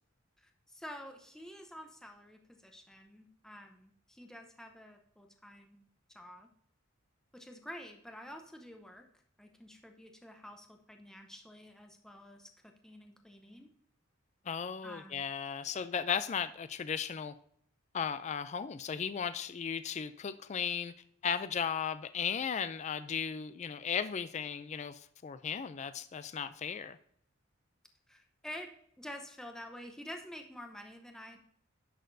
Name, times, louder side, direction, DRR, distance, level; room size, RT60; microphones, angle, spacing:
voice 1, 0.4-5.8 6.1-6.5 7.3-9.0 9.4-12.5 12.8-13.7 14.8-15.2 28.1-31.4, equal, 5° left, 4 dB, 0.7 m, -49 dB
voice 2, 14.5-17.3 17.9-20.9 21.2-27.0, left 7 dB, 35° left, 13 dB, 0.3 m, -36 dB
10.0 x 6.4 x 2.6 m, 0.66 s
head